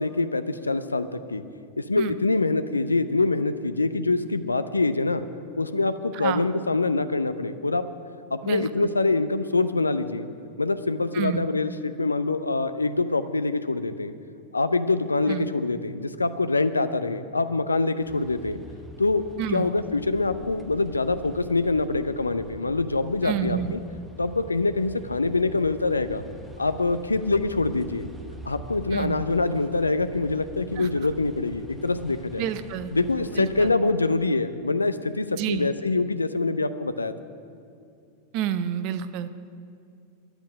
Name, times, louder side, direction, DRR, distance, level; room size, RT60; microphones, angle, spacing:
voice 1, 0.0-1.4 1.8-5.2 5.6-7.8 8.3-10.3 10.6-14.1 14.5-18.6 19.0-23.8 24.2-26.2 26.6-28.1 28.5-32.5 32.9-37.1, left 3 dB, 80° left, 11 dB, 0.6 m, -25 dB
voice 2, 11.1-11.5 15.3-15.5 19.4-19.7 23.2-23.7 28.9-29.2 30.8-30.9 32.4-32.9 33.4-33.7 35.4-35.7 38.3-39.3, right 10 dB, 45° right, 12 dB, 0.7 m, -29 dB
sound 1, 18.0-33.7, right 1 dB, 10° right, 1.0 m, -44 dB
10.5 x 8.0 x 9.8 m, 2.5 s
figure-of-eight pair, 90°, 0 cm